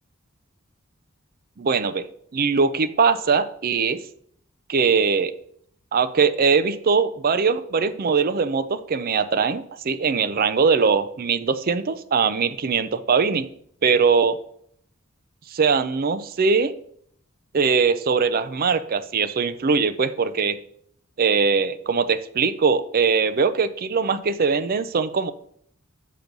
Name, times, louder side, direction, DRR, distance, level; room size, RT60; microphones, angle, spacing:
voice 1, 1.6-2.0 2.3-4.0 4.7-5.3 5.9-13.5 13.8-14.4 15.5-16.7 17.5-20.6 21.2-25.3, right 5 dB, 45° right, 11 dB, 0.5 m, -21 dB
6.8 x 5.2 x 5.9 m, 0.66 s
head